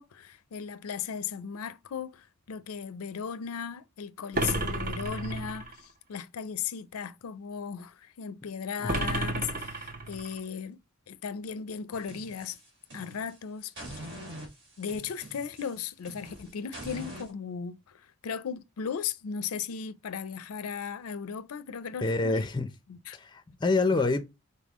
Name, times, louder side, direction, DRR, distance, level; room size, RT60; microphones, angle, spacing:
voice 1, 0.0-10.8 11.1-12.6 12.9-14.1 14.8-22.5 22.9-23.2, left 6 dB, 90° left, 0.4 m, -37 dB
sound 1, 4.3-5.8 8.9-10.4, right 2 dB, 40° right, 0.7 m, -31 dB
sound 2, 11.9-13.4 13.8-17.3, right 1 dB, 55° right, 1.8 m, -44 dB
voice 2, 22.0-22.7 23.2-24.2, left 3 dB, 20° left, 0.5 m, -26 dB
4.3 x 3.6 x 2.9 m
head